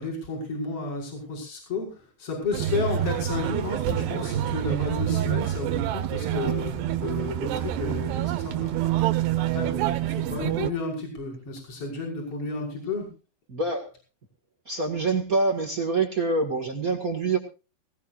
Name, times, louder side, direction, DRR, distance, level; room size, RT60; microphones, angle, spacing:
voice 1, 0.0-8.9 9.5-13.1, left 3 dB, 30° left, -1 dB, 6.5 m, -32 dB
sound 1, 2.5-10.7, right 12 dB, 80° right, 3.2 m, -27 dB
voice 2, 13.5-13.9 14.6-17.4, right 3 dB, 55° right, 3 dB, 0.9 m, -25 dB
19.0 x 19.0 x 2.5 m, 0.32 s
omnidirectional pair, 4.8 m